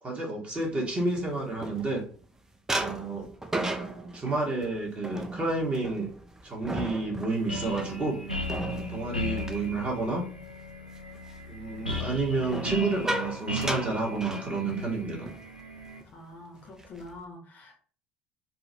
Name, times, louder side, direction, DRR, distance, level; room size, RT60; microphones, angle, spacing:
voice 1, 0.0-2.0 2.7-3.3 4.1-6.1 6.4-8.2 8.9-10.2 11.5-15.3, right 3 dB, 25° right, -1 dB, 1.2 m, -30 dB
sound 1, 0.8-2.2 2.7-10.5 10.9-11.2 12.4-15.0 15.3-15.5 15.8-16.1 16.5-17.2, right 1 dB, 10° right, 0.4 m, -36 dB
sound 2, 7.3-16.0, left 1 dB, 90° left, 0.4 m, -36 dB
voice 2, 16.1-17.8, left 2 dB, 35° left, 1 dB, 0.9 m, -45 dB
3.8 x 2.1 x 2.7 m, 0.42 s
figure-of-eight pair, 60°, 5 cm